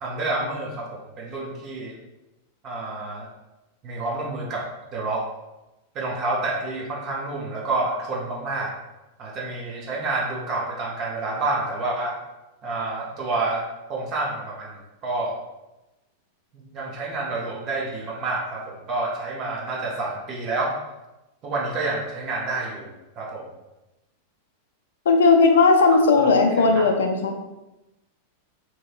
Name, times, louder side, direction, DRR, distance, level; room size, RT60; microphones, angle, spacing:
voice 1, 0.0-2.0 2.6-3.3 3.8-4.7 4.9-5.2 5.9-8.7 9.2-12.2 12.6-13.6 13.9-14.7 15.0-15.4 16.5-20.8 21.4-23.5 26.2-26.9, right 2 dB, 35° right, -3 dB, 0.6 m, -28 dB
voice 2, 25.1-27.3, left 4 dB, 65° left, 4 dB, 0.4 m, -17 dB
2.8 x 2.8 x 2.2 m, 0.99 s
figure-of-eight pair, 90°, 0 cm